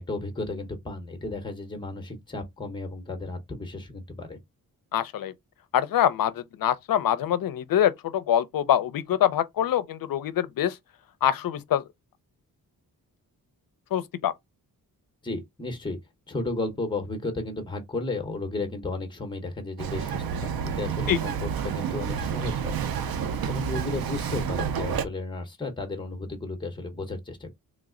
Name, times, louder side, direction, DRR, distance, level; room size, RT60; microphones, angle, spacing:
voice 1, 0.0-4.4 15.2-16.0 16.3-27.5, left 2 dB, 15° left, 0.8 m, -34 dB
voice 2, 4.9-5.3 5.7-10.8 11.2-11.8 13.9-14.3 21.1-21.2, left 10 dB, 70° left, 0.5 m, -24 dB
Bird vocalization bird call bird song, 19.8-25.1, right 7 dB, 75° right, 0.5 m, -29 dB
3.1 x 2.0 x 3.6 m
wide cardioid pair, 105°, 36 cm